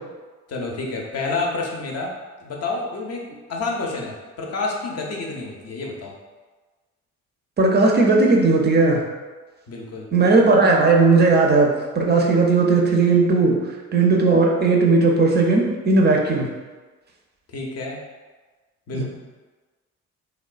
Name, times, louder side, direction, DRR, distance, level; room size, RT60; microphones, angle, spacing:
voice 1, 0.5-2.1 2.4-3.2 3.5-6.1 9.7-10.1 17.5-18.0 18.9-19.0, left 3 dB, 35° left, 0 dB, 0.6 m, -29 dB
voice 2, 7.6-9.0 10.1-11.7 11.9-13.6 13.9-16.5 18.9-19.0, right 3 dB, 25° right, 0 dB, 0.5 m, -16 dB
3.0 x 2.0 x 2.4 m, 1.3 s
figure-of-eight pair, 45°, 43 cm